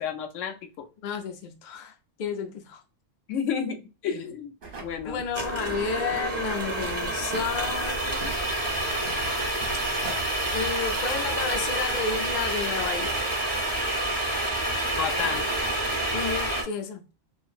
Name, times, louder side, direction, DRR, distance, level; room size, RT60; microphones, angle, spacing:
voice 1, 0.0-0.9 3.3-4.5 4.8-5.2 15.0-15.4, left 7 dB, 85° left, 1.0 m, -31 dB
voice 2, 1.0-2.8 5.1-8.3 10.5-13.2 16.1-17.1, left 6 dB, 50° left, 0.6 m, -32 dB
sound 1, 4.6-13.4, right 3 dB, 50° right, 0.9 m, -42 dB
sound 2, 5.3-16.6, right 1 dB, 15° right, 0.8 m, -28 dB
2.9 x 2.3 x 2.4 m
omnidirectional pair, 1.3 m